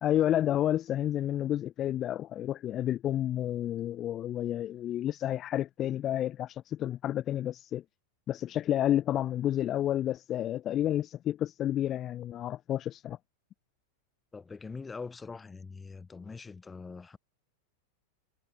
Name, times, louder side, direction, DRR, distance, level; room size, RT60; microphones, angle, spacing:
voice 1, 0.0-7.8 8.3-13.2, left 12 dB, 30° left, 1.3 m, -30 dB
voice 2, 14.3-17.2, left 4 dB, 15° left, 7.7 m, -43 dB
figure-of-eight pair, 90°, 0 cm